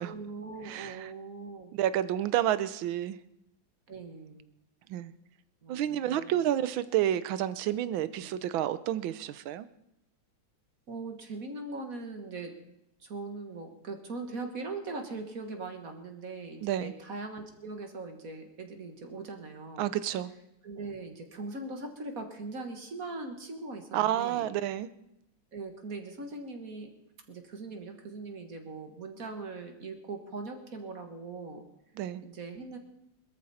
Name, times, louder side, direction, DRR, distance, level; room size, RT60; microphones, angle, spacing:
voice 1, 0.0-1.7 3.9-4.4 5.6-6.4 8.2-8.3 10.9-12.5 13.0-19.9 20.6-24.5 25.5-26.9 27.3-31.7 32.2-32.8, right 3 dB, 45° right, 5 dB, 1.9 m, -40 dB
voice 2, 0.6-1.1 1.7-3.2 4.9-5.1 5.7-9.7 16.6-16.9 19.8-20.3 23.9-24.9 32.0-32.2, right 12 dB, 85° right, 15 dB, 1.5 m, -30 dB
21.5 x 13.5 x 4.2 m, 0.85 s
omnidirectional pair, 2.1 m